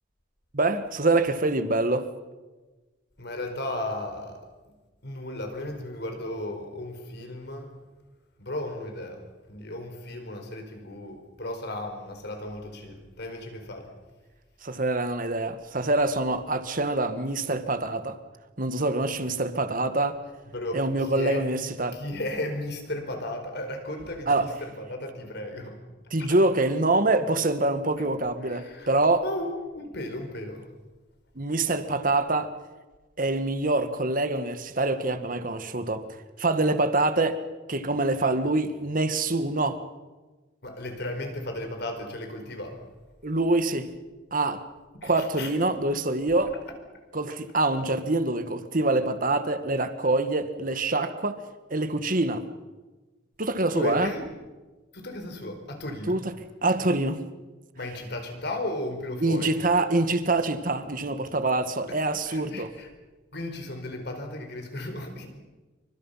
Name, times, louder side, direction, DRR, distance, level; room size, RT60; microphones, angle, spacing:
voice 1, 0.5-2.1 14.6-18.2 18.6-20.2 20.7-22.0 24.3-24.5 26.1-29.2 31.3-32.5 33.2-36.0 36.4-37.4 37.7-39.8 43.2-43.9 44.3-44.6 45.0-46.5 47.1-51.4 51.7-52.4 53.4-54.1 56.1-56.3 56.6-57.2 59.2-62.7, right 2 dB, 45° right, 9 dB, 1.7 m, -25 dB
voice 2, 3.2-4.7 5.0-7.7 8.4-9.2 9.5-13.9 20.5-25.8 26.2-26.4 28.0-28.1 28.4-28.9 29.2-30.7 40.6-42.8 45.0-45.5 53.7-54.3 54.9-56.2 57.7-59.6 62.3-62.9 63.3-65.4, left 1 dB, 55° left, 5 dB, 4.6 m, -35 dB
28.5 x 24.5 x 5.8 m, 1.2 s
head